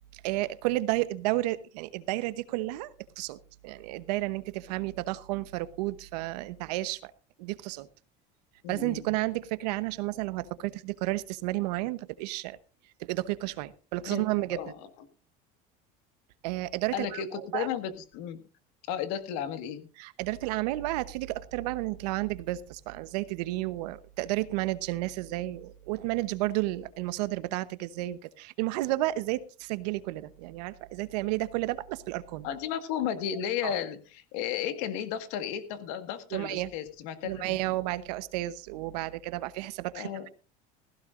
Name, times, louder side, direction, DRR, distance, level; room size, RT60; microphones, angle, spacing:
voice 1, 0.1-3.4 3.6-7.1 7.4-7.9 8.7-12.6 13.0-14.6 16.4-17.2 17.5-17.7 20.0-32.5 33.6-33.7 36.3-36.7 37.2-40.3, right 17 dB, 90° right, 14 dB, 1.0 m, -32 dB
voice 2, 8.6-9.2 14.1-14.2 14.5-14.9 16.9-18.4 18.9-19.9 32.4-37.8 39.9-40.3, left 9 dB, 75° left, 10 dB, 1.8 m, -34 dB
16.5 x 16.0 x 2.6 m, 0.34 s
supercardioid pair, 125°, 20 cm